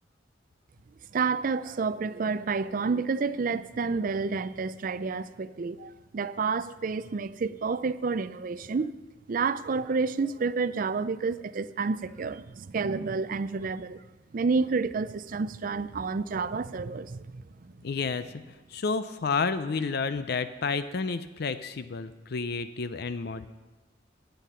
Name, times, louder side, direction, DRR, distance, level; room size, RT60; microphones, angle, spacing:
voice 1, 1.1-8.9 9.3-14.0 14.3-17.7, right 4 dB, 50° right, 0.4 m, -29 dB
voice 2, 17.8-18.4 18.7-23.5, left 4 dB, 60° left, 0.5 m, -30 dB
13.0 x 9.2 x 5.7 m
head